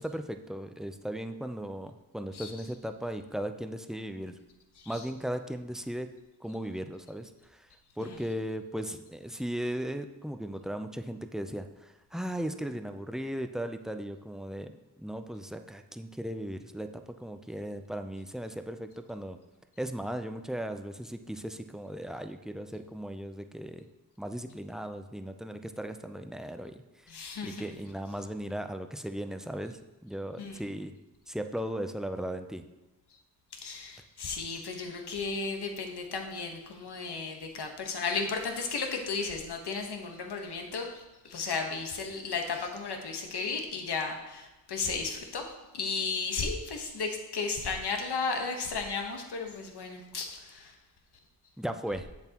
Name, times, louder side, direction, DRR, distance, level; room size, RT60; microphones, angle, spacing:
voice 1, 0.0-4.4 4.9-6.1 6.4-7.7 8.0-19.4 19.8-23.9 24.2-26.8 27.4-30.9 31.3-32.6 51.6-52.1, equal, ahead, 7 dB, 0.5 m, -37 dB
voice 2, 27.1-27.7 30.4-30.6 33.5-50.7, left 4 dB, 70° left, 3 dB, 1.3 m, -34 dB
8.0 x 7.1 x 3.0 m, 1.1 s
cardioid pair, 65°, 41 cm